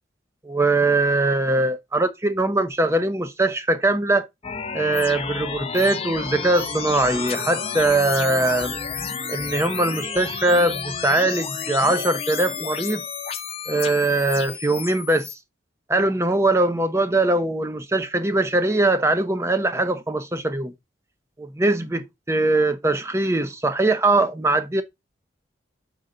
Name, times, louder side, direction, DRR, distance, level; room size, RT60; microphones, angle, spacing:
voice 1, 0.4-4.3 4.7-8.7 9.3-13.0 13.7-15.4 15.9-20.7 21.4-24.8, right 2 dB, 15° right, 0.7 m, -21 dB
sound 1, 4.4-15.3, left 6 dB, 30° left, 0.7 m, -31 dB
6.2 x 5.4 x 3.8 m
head